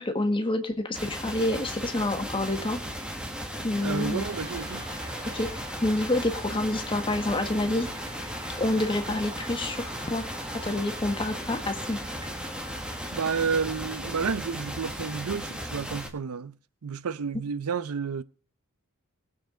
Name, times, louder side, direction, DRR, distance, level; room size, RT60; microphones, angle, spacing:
voice 1, 0.0-2.8 3.6-4.2 5.3-7.9 8.6-10.2 10.6-12.0, left 1 dB, 25° left, 1.4 m, -28 dB
sound 1, 0.9-16.1, equal, 5° right, 1.4 m, -36 dB
sound 2, 3.7-13.3, right 1 dB, 20° right, 1.8 m, -44 dB
voice 2, 3.8-4.8 13.1-16.5 16.8-18.2, right 5 dB, 85° right, 0.6 m, -30 dB
20.0 x 7.3 x 3.8 m
head